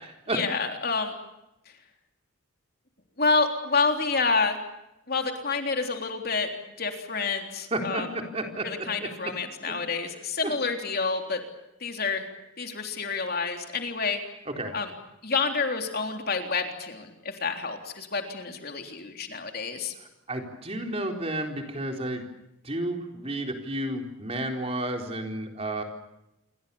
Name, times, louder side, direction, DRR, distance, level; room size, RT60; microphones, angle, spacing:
voice 1, 0.3-1.1 3.2-4.6 5.1-6.5 6.8-8.1 8.6-11.4 11.8-12.2 12.6-14.2 14.7-14.9 15.2-19.9, left 4 dB, 45° left, 4 dB, 3.6 m, -28 dB
voice 2, 7.7-8.7 10.4-10.5 14.6-14.7 20.3-22.2 22.6-25.8, right 1 dB, 30° right, 3 dB, 4.2 m, -31 dB
28.0 x 24.5 x 7.1 m, 0.88 s
head